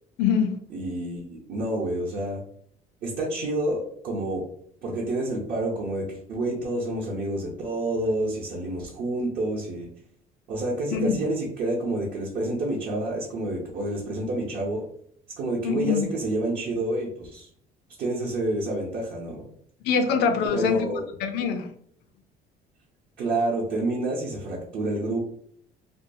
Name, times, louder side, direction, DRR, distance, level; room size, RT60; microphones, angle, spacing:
voice 1, 0.2-0.6 10.9-11.2 15.6-16.1 19.8-20.9 21.2-21.7, left 6 dB, 80° left, 7 dB, 0.5 m, -24 dB
voice 2, 0.7-2.4 3.0-4.4 4.8-9.9 10.5-14.8 15.4-17.5 18.0-19.5 20.5-21.0 23.2-25.2, right 1 dB, 65° right, -5 dB, 0.7 m, -28 dB
2.6 x 2.3 x 2.6 m, 0.64 s
cardioid pair, 110°, 17 cm